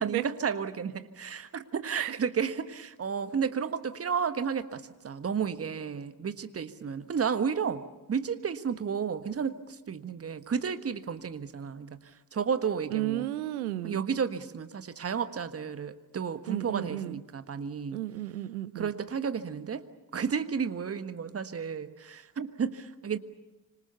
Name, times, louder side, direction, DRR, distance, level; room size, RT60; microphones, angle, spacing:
voice 1, 0.0-12.0 12.3-13.3 13.8-18.0 18.7-19.8 20.1-23.2, right 6 dB, 30° right, 11 dB, 1.4 m, -32 dB
voice 2, 12.9-14.0 16.5-17.2 17.9-19.0, right 14 dB, 75° right, 17 dB, 0.8 m, -33 dB
26.5 x 25.5 x 6.9 m, 1.1 s
figure-of-eight pair, 40°, 44 cm